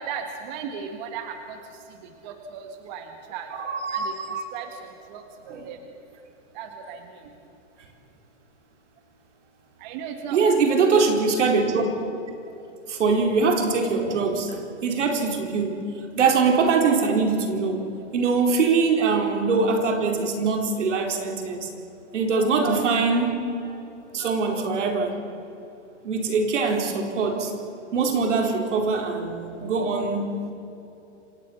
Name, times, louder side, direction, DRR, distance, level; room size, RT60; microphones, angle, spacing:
voice 1, 0.0-1.6 2.2-3.5 3.9-4.1 4.5-5.2 5.6-5.8 6.6-7.0 9.8-10.5, right 7 dB, 40° right, 5 dB, 1.8 m, -36 dB
voice 2, 3.6-4.4 5.5-5.7 10.3-11.9 12.9-15.8 16.1-17.8 18.1-21.7 22.1-23.8 24.1-25.1 26.0-27.5 27.9-30.3, right 4 dB, 80° right, 3 dB, 4.5 m, -23 dB
27.0 x 17.5 x 7.2 m, 3.0 s
hypercardioid pair, 155°, 35 cm